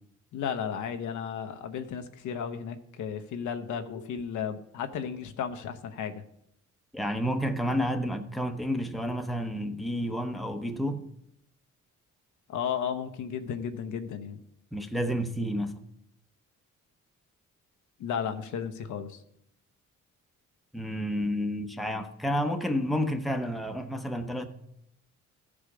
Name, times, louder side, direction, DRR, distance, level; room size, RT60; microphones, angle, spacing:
voice 1, 0.3-6.2 12.5-14.4 18.0-19.2, left 7 dB, 75° left, 0.9 m, -34 dB
voice 2, 6.9-11.0 14.7-15.7 20.7-24.5, equal, ahead, 0.9 m, -30 dB
14.0 x 5.0 x 5.0 m
cardioid pair, 90°, 30 cm